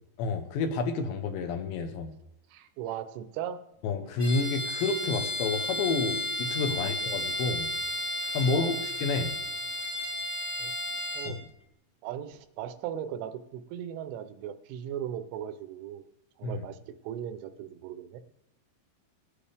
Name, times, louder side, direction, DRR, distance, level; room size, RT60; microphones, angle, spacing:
voice 1, 0.2-2.2 3.8-7.7 8.3-9.3 11.3-11.4 16.4-16.7, left 4 dB, 75° left, 6 dB, 3.1 m, -30 dB
voice 2, 2.5-3.6 6.7-6.9 8.5-8.9 10.6-10.7 11.1-11.4 12.0-16.1 16.4-18.2, right 10 dB, 85° right, 11 dB, 3.1 m, -38 dB
Bowed string instrument, 4.2-11.4, left 1 dB, 20° right, 1.2 m, -33 dB
20.5 x 9.9 x 3.4 m, 0.80 s
omnidirectional pair, 5.5 m